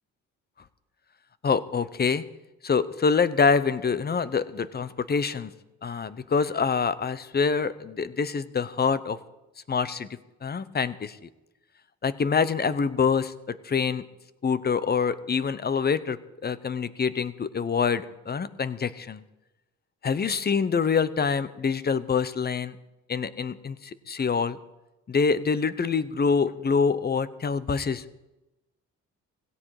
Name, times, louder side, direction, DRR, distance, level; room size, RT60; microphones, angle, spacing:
voice 1, 1.4-2.2 2.6-5.5 5.8-9.2 9.7-10.1 10.4-11.2 12.0-14.0 14.4-19.2 20.0-22.8 23.1-24.6 25.1-28.1, left 5 dB, 35° left, 15 dB, 1.0 m, -25 dB
17.0 x 16.5 x 4.9 m, 0.99 s
cardioid pair, 90°, 30 cm